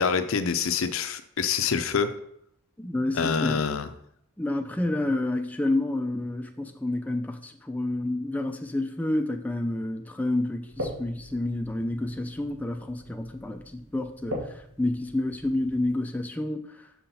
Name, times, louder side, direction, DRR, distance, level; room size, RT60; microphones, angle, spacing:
voice 1, 0.0-2.1 3.1-3.9, left 6 dB, 70° left, 10 dB, 0.6 m, -26 dB
voice 2, 2.8-3.7 4.4-14.4 14.8-16.6, left 1 dB, 5° left, 5 dB, 0.4 m, -29 dB
sound 1, 10.6-15.8, equal, 80° right, 1.8 m, -40 dB
6.3 x 5.6 x 4.2 m, 0.71 s
head